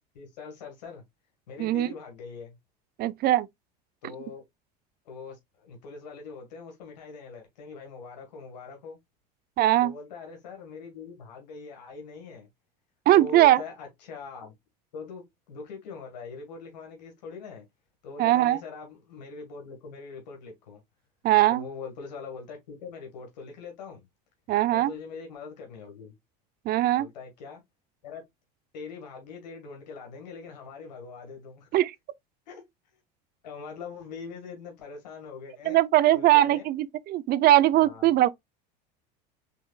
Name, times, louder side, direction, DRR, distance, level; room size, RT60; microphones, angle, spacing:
voice 1, 0.1-1.0 1.5-2.6 4.0-4.4 5.0-9.0 9.8-12.5 13.1-14.5 14.9-17.6 18.0-20.8 21.5-24.1 24.7-26.1 27.0-27.6 28.0-28.2 28.7-31.8 32.5-32.6 33.4-35.8 36.1-36.7 37.7-38.1, left 4 dB, 90° left, 1.7 m, -42 dB
voice 2, 3.0-3.5 9.6-9.9 13.1-13.6 18.2-18.6 21.2-21.6 24.5-24.9 26.7-27.1 31.7-31.9 35.7-38.3, right 14 dB, 50° right, 0.5 m, -20 dB
5.6 x 3.6 x 2.3 m
supercardioid pair, 95°, 21 cm